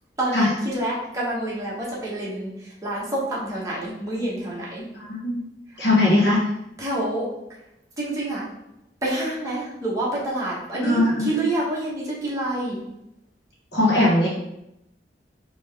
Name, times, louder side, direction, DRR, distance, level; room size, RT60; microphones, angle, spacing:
voice 1, 0.2-4.8 6.8-7.2 8.0-8.5 9.0-12.8, right 1 dB, 20° right, -6 dB, 1.3 m, -27 dB
voice 2, 5.0-5.4 5.8-6.4 10.8-11.3 13.7-14.3, left 2 dB, 75° left, -6 dB, 1.4 m, -19 dB
4.5 x 3.1 x 3.4 m, 0.85 s
head